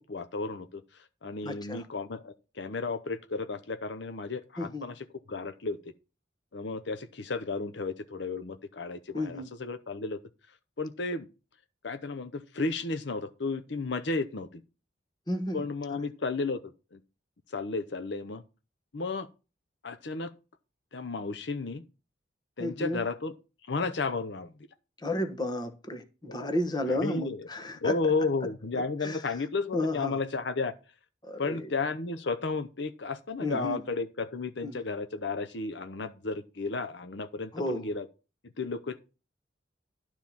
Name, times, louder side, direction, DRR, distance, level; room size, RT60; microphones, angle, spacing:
voice 1, 0.1-0.8 1.2-5.8 6.5-10.2 10.8-11.3 11.8-14.6 15.5-16.6 16.9-17.0 17.5-18.4 18.9-19.3 19.8-20.3 20.9-21.8 22.6-23.3 23.7-24.5 26.3-26.5 26.9-27.4 27.8-30.7 31.4-38.0 38.6-39.0, left 3 dB, 65° left, 0.7 m, -33 dB
voice 2, 1.4-1.9 4.6-4.9 9.1-9.5 15.3-16.1 22.6-23.0 25.0-27.9 28.7-29.4 29.7-30.2 31.2-31.7 33.4-33.8 34.6-34.8 37.5-37.9, left 1 dB, 20° left, 1.3 m, -33 dB
11.5 x 4.5 x 7.1 m
head